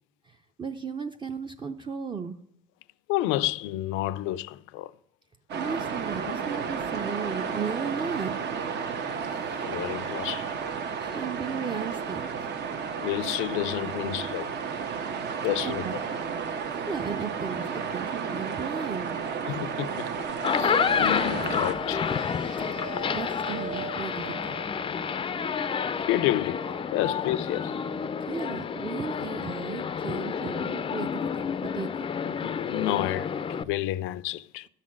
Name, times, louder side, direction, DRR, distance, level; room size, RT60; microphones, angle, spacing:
voice 1, 0.2-2.4 5.6-8.3 11.0-12.5 15.6-15.9 16.7-17.7 17.9-19.2 23.1-24.6 28.3-31.5 31.7-32.1, right 6 dB, 25° right, 0.6 m, -35 dB
voice 2, 3.1-4.9 6.2-6.4 9.6-10.6 13.0-14.5 15.4-15.9 19.5-20.3 20.5-22.1 26.0-27.7 32.3-34.7, left 15 dB, 90° left, 0.4 m, -30 dB
sound 1, 5.5-21.7, right 6 dB, 65° right, 1.1 m, -32 dB
sound 2, 20.3-33.6, left 7 dB, 25° left, 0.4 m, -29 dB
sound 3, 20.8-30.9 31.2-31.7, right 4 dB, 40° right, 1.7 m, -44 dB
12.5 x 4.2 x 7.4 m
cardioid pair, 105°, 20 cm